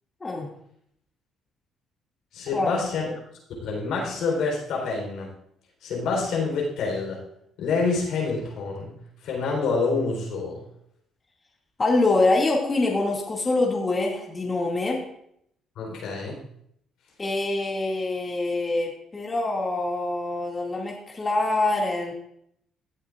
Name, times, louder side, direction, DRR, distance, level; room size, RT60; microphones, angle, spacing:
voice 1, 2.3-3.1 3.6-5.3 5.8-7.2 7.6-8.9 9.2-10.6 15.8-16.4, left 4 dB, 75° left, 0 dB, 3.8 m, -27 dB
voice 2, 11.8-15.0 17.2-22.1, left 2 dB, 30° left, -2 dB, 2.2 m, -25 dB
17.0 x 8.2 x 2.5 m, 0.72 s
supercardioid pair, 75°, 0 cm